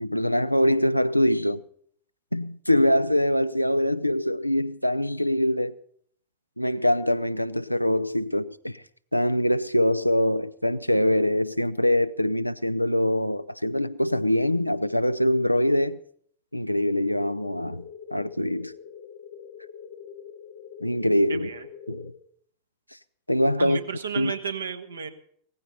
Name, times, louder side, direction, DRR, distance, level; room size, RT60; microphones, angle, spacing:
voice 1, 0.0-1.6 2.3-5.7 6.6-8.8 9.1-16.0 16.5-18.7 20.8-21.5 21.9-22.1 23.3-23.8 24.2-24.3, left 1 dB, 90° left, 0.5 m, -23 dB
sound 1, 17.1-22.1, left 7 dB, 45° left, 1.0 m, -43 dB
voice 2, 21.3-21.7 23.6-25.1, right 6 dB, 75° right, 1.5 m, -33 dB
17.5 x 15.0 x 4.2 m
figure-of-eight pair, 90°, 0 cm